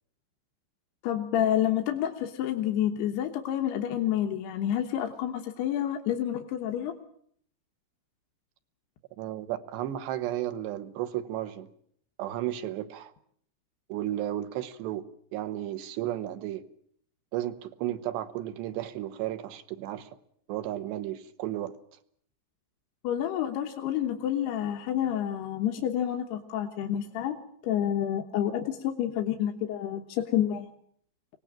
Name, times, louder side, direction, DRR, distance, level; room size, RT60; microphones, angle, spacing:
voice 1, 1.0-7.0 23.0-27.4 27.6-30.7, left 10 dB, 70° left, 4 dB, 3.1 m, -29 dB
voice 2, 9.2-11.7 12.2-13.1 13.9-15.0 15.3-16.6 17.3-20.1 20.5-21.7, right 13 dB, 75° right, 10 dB, 3.3 m, -33 dB
24.5 x 18.0 x 8.9 m, 0.65 s
omnidirectional pair, 5.2 m